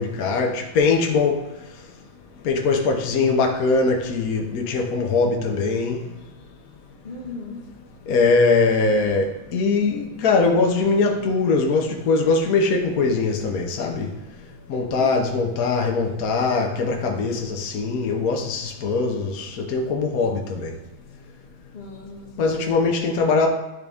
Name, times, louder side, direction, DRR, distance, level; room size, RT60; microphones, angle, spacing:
voice 1, 0.0-1.4 2.4-6.0 8.1-14.1 14.7-20.7 22.4-23.5, left 4 dB, 55° left, 1 dB, 1.1 m, -21 dB
voice 2, 7.0-7.7 14.9-15.3 21.7-22.9, left 2 dB, 35° left, -3 dB, 1.4 m, -38 dB
11.0 x 3.7 x 3.5 m, 1.0 s
omnidirectional pair, 2.1 m